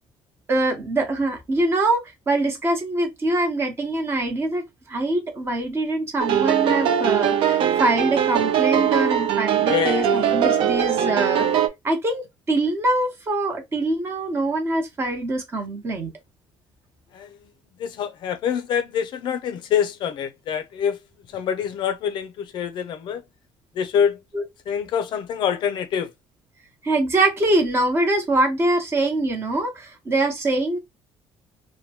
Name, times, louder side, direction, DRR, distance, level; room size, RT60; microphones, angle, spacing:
voice 1, 0.5-11.5 11.8-16.1 24.3-24.4 26.8-30.8, right 2 dB, 25° right, 0.9 m, -23 dB
sound 1, 6.2-11.7, right 9 dB, 60° right, 0.5 m, -21 dB
voice 2, 9.7-10.1 11.0-11.2 17.1-17.5 17.8-21.0 21.3-23.2 23.7-24.2 24.7-26.1, left 8 dB, 50° left, 0.4 m, -25 dB
2.9 x 2.1 x 2.8 m
cardioid pair, 160°, 10 cm